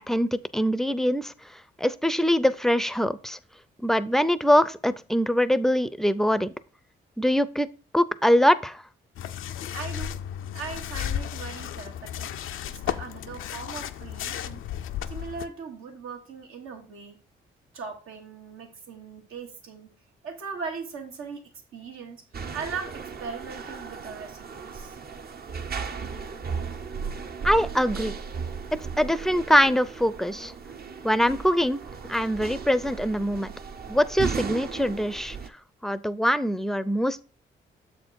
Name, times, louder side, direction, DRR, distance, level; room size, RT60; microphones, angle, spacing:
voice 1, 0.0-1.3 1.8-3.4 3.8-6.5 7.2-7.7 7.9-8.8 27.4-28.1 29.0-30.5 31.0-31.8 32.1-33.5 33.9-35.4 35.8-37.2, equal, ahead, 15 dB, 0.5 m, -23 dB
sound 1, 9.2-15.5, left 10 dB, 80° left, 0.5 m, -34 dB
voice 2, 9.7-10.1 10.5-12.3 12.6-14.6 15.1-17.2 17.7-19.9 20.2-21.4 21.7-22.2 22.5-25.0, right 5 dB, 85° right, 3 dB, 1.4 m, -39 dB
sound 2, 22.3-35.5, right 5 dB, 50° right, 0.7 m, -36 dB
7.1 x 4.3 x 4.6 m, 0.35 s
cardioid pair, 65°, 21 cm